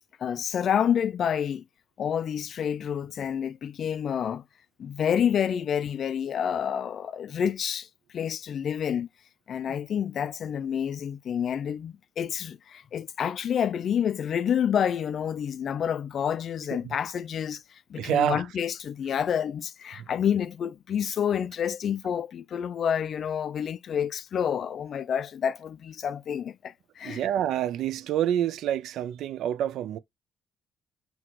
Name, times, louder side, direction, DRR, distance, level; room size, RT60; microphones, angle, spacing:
voice 1, 0.2-1.6 2.0-4.4 4.8-7.9 8.1-9.1 9.5-27.2, left 8 dB, 50° left, 0.3 m, -28 dB
voice 2, 17.9-18.5 20.0-20.1 27.0-30.0, right 10 dB, 80° right, 0.4 m, -27 dB
6.0 x 2.9 x 2.9 m
cardioid pair, 140°, 0 cm